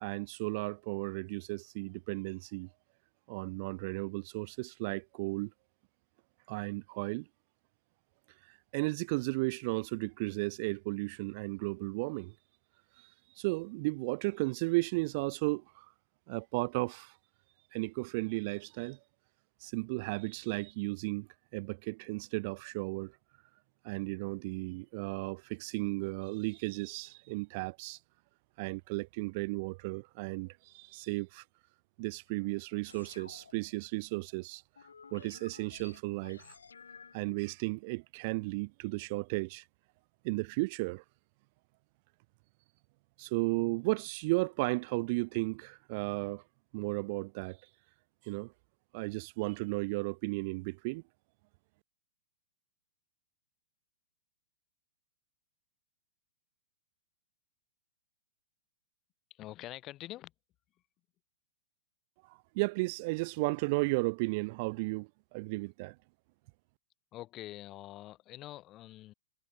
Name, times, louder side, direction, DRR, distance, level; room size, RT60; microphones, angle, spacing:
voice 1, 0.0-2.7 3.3-5.5 6.5-7.3 8.5-12.3 13.0-15.9 16.3-17.2 17.7-19.0 19.6-23.1 23.8-28.0 28.6-31.4 32.0-34.6 35.1-36.6 37.1-39.6 40.2-41.0 43.2-46.4 46.7-47.6 48.2-48.5 48.9-51.0 62.2-66.0, right 26 dB, 45° right, 0.3 m, -34 dB
sound 1, 32.9-33.9 34.8-37.3, left 6 dB, 90° left, 1.1 m, -54 dB
voice 2, 59.3-60.3 67.1-69.1, left 15 dB, 30° left, 5.8 m, -45 dB
hypercardioid pair, 125°, 0 cm